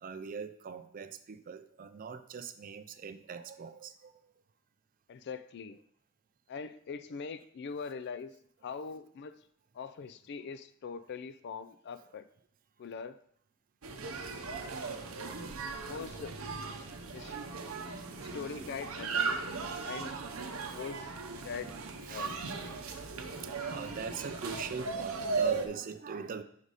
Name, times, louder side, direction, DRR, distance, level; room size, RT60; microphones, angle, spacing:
voice 1, 0.0-4.1 15.0-15.3 18.0-18.2 19.7-19.8 20.7-20.8 22.0-26.4, right 6 dB, 40° right, 11 dB, 0.4 m, -43 dB
voice 2, 5.1-5.8 6.5-8.3 8.6-9.3 9.7-12.3 12.8-13.2 14.9-15.3 15.9-16.7 17.1-17.4 18.2-19.4 19.8-20.2 20.5-21.8 22.1-22.4, left 5 dB, 55° left, 12 dB, 0.4 m, -42 dB
sound 1, 13.8-25.7, right 4 dB, 80° right, 0.7 m, -37 dB
5.1 x 4.0 x 4.8 m, 0.68 s
head